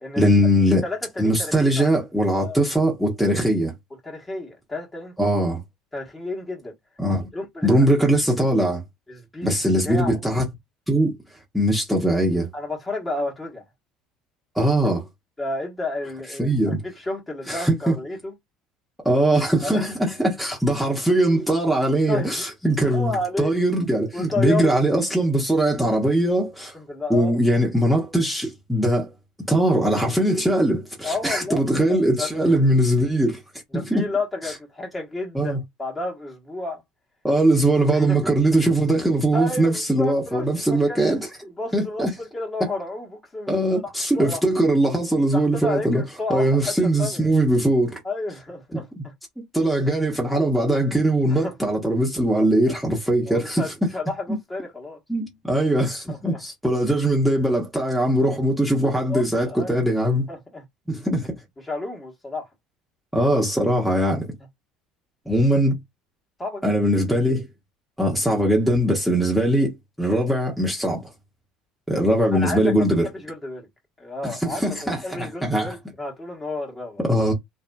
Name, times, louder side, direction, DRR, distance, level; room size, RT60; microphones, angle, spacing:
voice 1, 0.2-0.8 1.2-3.7 5.2-5.6 7.0-7.3 7.6-8.8 9.4-10.4 10.9-11.2 11.5-12.5 14.5-15.0 16.4-16.8 17.5-18.0 19.0-26.7 27.1-29.1 29.5-33.4 33.7-34.1 34.4-34.5 35.3-35.6 37.2-41.3 41.7-42.1 43.5-46.0 46.3-48.0 48.7-48.8 49.5-53.9 55.1-60.2 60.9-61.3 63.1-64.3 65.3-65.8 66.6-67.5 68.0-71.1 71.9-73.1 74.2-75.7 77.0-77.3, right 1 dB, ahead, 0.9 m, -21 dB
voice 2, 0.8-1.8 2.4-2.6 4.0-5.1 5.9-6.7 7.3-7.9 9.1-9.6 9.8-10.3 12.5-13.6 15.4-18.3 19.6-19.9 22.1-22.5 22.9-23.5 24.1-24.8 26.7-27.4 31.0-31.6 31.9-32.6 33.7-36.8 37.9-38.4 39.3-41.0 41.6-44.4 45.3-47.3 48.0-49.1 51.3-51.5 52.3-52.8 53.3-55.0 55.5-55.6 56.1-56.4 58.5-59.8 60.3-60.6 61.6-62.5 66.4-66.7 72.3-73.7 74.0-77.0, left 2 dB, 20° left, 1.2 m, -31 dB
2.6 x 2.3 x 2.2 m
hypercardioid pair, 75°, 0 cm